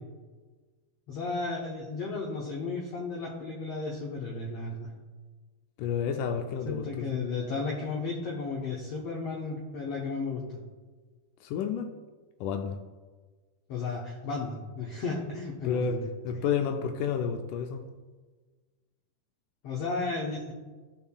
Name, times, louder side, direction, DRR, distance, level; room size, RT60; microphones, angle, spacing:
voice 1, 1.1-4.9 6.6-10.6 13.7-16.1 19.6-20.5, left 4 dB, 70° left, -2 dB, 1.5 m, -34 dB
voice 2, 5.8-7.2 11.4-11.9 12.4-12.8 15.6-17.8, left 6 dB, 85° left, 5 dB, 1.8 m, -30 dB
15.5 x 5.6 x 2.3 m, 1.3 s
omnidirectional pair, 4.2 m